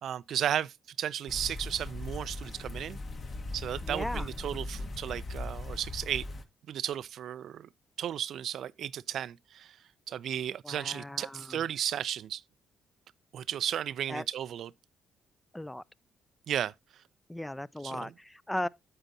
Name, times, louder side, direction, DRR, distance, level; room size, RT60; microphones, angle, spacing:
voice 1, 0.0-3.0 3.5-6.2 6.7-7.7 8.0-9.8 10.1-12.4 13.3-14.7 16.5-16.7 17.8-18.1, right 10 dB, 70° right, 0.3 m, -34 dB
sound 1, 1.3-6.4, left 2 dB, 45° left, 1.3 m, -39 dB
voice 2, 3.8-4.3 10.6-11.6 14.1-14.2 15.5-15.8 17.3-18.7, left 1 dB, 10° left, 0.4 m, -37 dB
9.0 x 8.0 x 2.7 m
cardioid pair, 90°, 0 cm